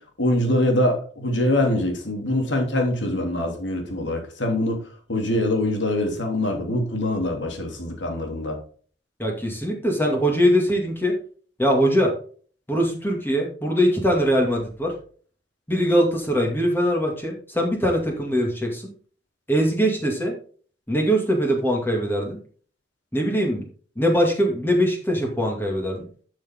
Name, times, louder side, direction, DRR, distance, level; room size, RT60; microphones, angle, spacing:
voice 1, 0.2-4.8 5.1-8.6, left 1 dB, 75° left, 2 dB, 3.0 m, -24 dB
voice 2, 9.2-11.1 11.6-12.1 12.7-14.9 15.7-18.9 19.5-20.3 20.9-22.4 23.1-23.6 24.0-26.1, equal, 10° left, 0 dB, 2.2 m, -22 dB
12.0 x 6.3 x 3.7 m, 0.43 s
head